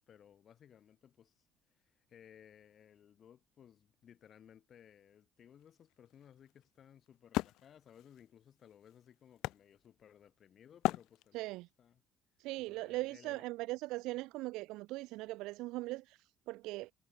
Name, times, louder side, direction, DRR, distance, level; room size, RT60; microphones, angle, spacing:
voice 1, 0.0-11.5 11.8-12.0 12.7-13.5, left 9 dB, 45° left, 3.7 m, -60 dB
Wood, 5.6-10.3 10.8-11.7, left 18 dB, 80° left, 0.5 m, -39 dB
voice 2, 11.3-11.7 12.4-16.9, right 20 dB, 85° right, 0.3 m, -40 dB
cardioid pair, 125°, 0 cm